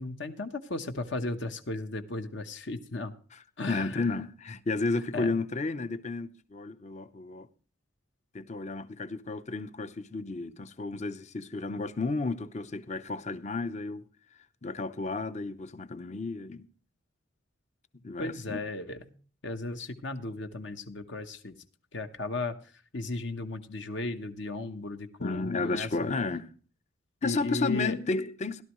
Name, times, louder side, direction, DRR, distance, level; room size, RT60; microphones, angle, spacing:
voice 1, 0.0-3.1 3.6-4.0 5.1-5.3 18.2-19.1 19.4-21.5 21.9-22.5 22.9-26.1 27.2-27.9, left 2 dB, 60° left, 1.0 m, -35 dB
voice 2, 3.7-7.5 8.3-14.0 14.6-16.7 18.0-18.6 25.2-26.5 27.2-28.6, left 3 dB, 35° left, 0.7 m, -32 dB
16.5 x 12.0 x 3.1 m
head